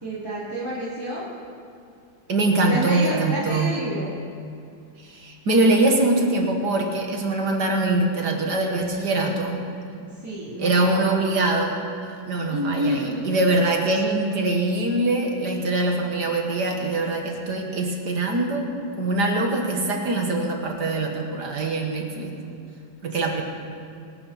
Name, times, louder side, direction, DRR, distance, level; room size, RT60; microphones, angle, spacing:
voice 1, 0.0-1.2 2.7-4.1 10.2-11.2 12.5-13.2, equal, 10° right, -9 dB, 2.6 m, -29 dB
voice 2, 2.3-3.7 5.0-9.6 10.6-11.8 12.3-18.7 19.0-22.3 23.0-23.4, right 2 dB, 60° right, 1 dB, 2.1 m, -23 dB
23.5 x 12.0 x 4.2 m, 2.4 s
omnidirectional pair, 2.1 m